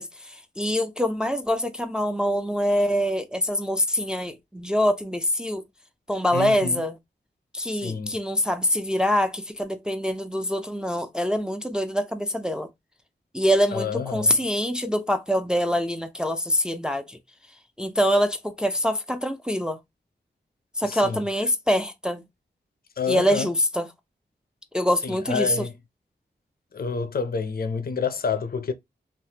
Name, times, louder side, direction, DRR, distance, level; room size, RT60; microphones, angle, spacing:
voice 1, 0.0-5.6 6.1-6.9 7.5-12.7 13.3-17.2 17.8-19.8 20.8-22.2 23.1-23.9 24.7-25.6, equal, 5° right, 0.4 m, -24 dB
voice 2, 6.3-6.8 7.7-8.2 13.7-14.4 20.8-21.2 23.0-23.5 25.0-25.8 26.7-28.7, left 5 dB, 55° left, 0.5 m, -28 dB
3.2 x 2.0 x 2.8 m
wide cardioid pair, 70°, 18 cm